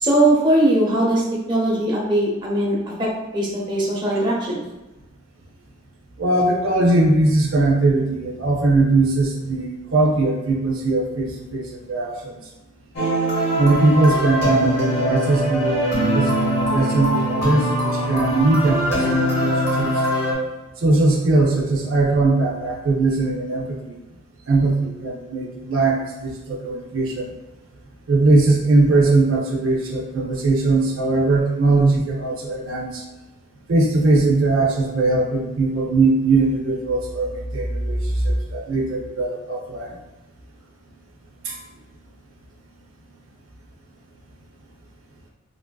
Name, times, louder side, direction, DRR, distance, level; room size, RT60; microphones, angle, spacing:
voice 1, 0.0-1.2 1.5-4.6, right 1 dB, 20° right, -5 dB, 0.6 m, -20 dB
voice 2, 6.2-12.3 13.6-20.0 20.8-23.9 24.5-27.3 28.1-33.0 33.7-40.0 41.4-41.5, right 2 dB, 75° right, -2 dB, 0.5 m, -20 dB
sound 1, 13.0-20.3, equal, 55° left, 0.9 m, -22 dB
3.2 x 2.5 x 2.2 m, 1.0 s
head